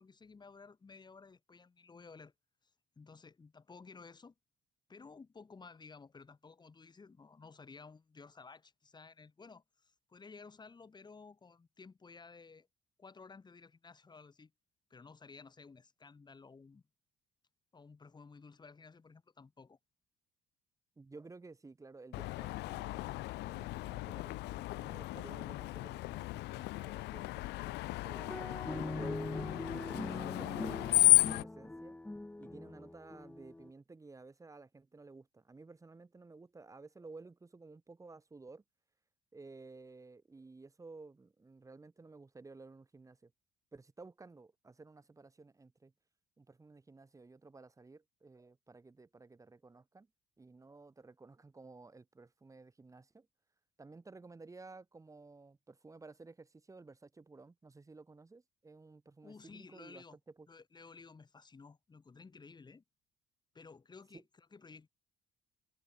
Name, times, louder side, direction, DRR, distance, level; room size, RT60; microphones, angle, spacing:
voice 1, 0.0-2.3 3.0-4.3 4.9-12.7 13.0-14.5 14.9-16.8 17.7-19.8 59.2-60.2 60.5-62.8 63.5-64.9, left 4 dB, 25° left, 6.3 m, -55 dB
voice 2, 21.0-28.3 29.0-29.5 29.9-32.0 32.4-38.6 39.3-43.3 43.7-45.9 46.4-50.1 50.4-53.3 53.8-60.5 64.1-64.2, right 3 dB, 20° right, 3.2 m, -54 dB
Screech, 22.1-31.4, left 19 dB, 85° left, 1.2 m, -33 dB
sound 1, 28.1-33.7, left 2 dB, 5° left, 0.7 m, -42 dB
cardioid pair, 110°, 17 cm